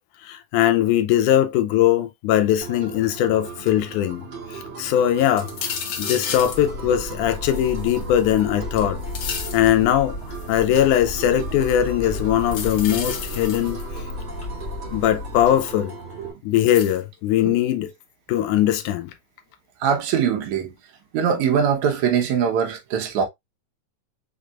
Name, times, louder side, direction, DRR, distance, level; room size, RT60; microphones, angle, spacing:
voice 1, 0.2-4.2 4.5-5.5 6.0-9.0 9.5-10.2 10.5-13.8 14.9-15.9 16.4-17.9 18.3-19.1, left 11 dB, 85° left, 2.2 m, -20 dB
sound 1, 2.6-16.3, right 4 dB, 40° right, 3.4 m, -38 dB
sound 2, 5.4-6.7 7.5-8.4 8.8-9.7 10.3-10.8 12.4-14.0 15.7-15.8 16.7-17.0, left 7 dB, 70° left, 1.2 m, -32 dB
sound 3, 6.4-15.7, left 2 dB, 25° left, 1.9 m, -34 dB
voice 2, 19.8-20.7 21.1-23.2, right 7 dB, 70° right, 2.3 m, -22 dB
5.8 x 3.5 x 2.3 m
omnidirectional pair, 3.5 m